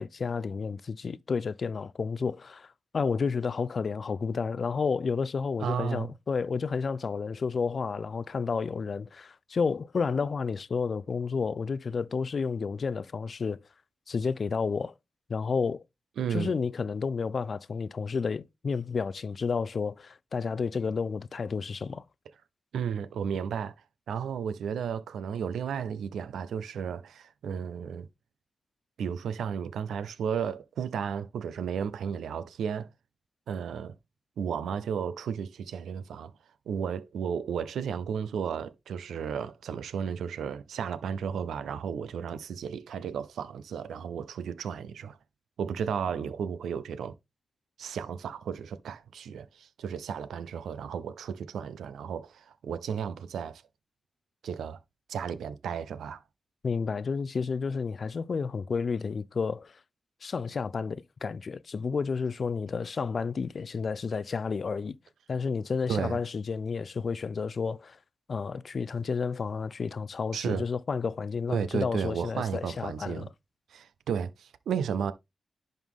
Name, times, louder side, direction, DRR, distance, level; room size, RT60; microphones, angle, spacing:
voice 1, 0.0-2.7 2.9-13.6 14.1-14.9 15.3-15.8 16.3-22.0 56.6-59.7 60.2-65.0 65.3-68.0 68.3-73.3, left 5 dB, 60° left, 0.4 m, -31 dB
voice 2, 5.6-6.1 16.2-16.5 22.7-23.7 24.1-28.1 29.0-32.9 33.5-34.0 34.4-36.3 36.7-45.2 45.6-47.1 47.8-53.6 54.4-54.8 55.1-56.2 65.9-66.2 70.3-70.6 71.5-73.3 73.7-75.1, right 7 dB, 90° right, 0.5 m, -33 dB
10.5 x 4.0 x 3.6 m
supercardioid pair, 45°, 0 cm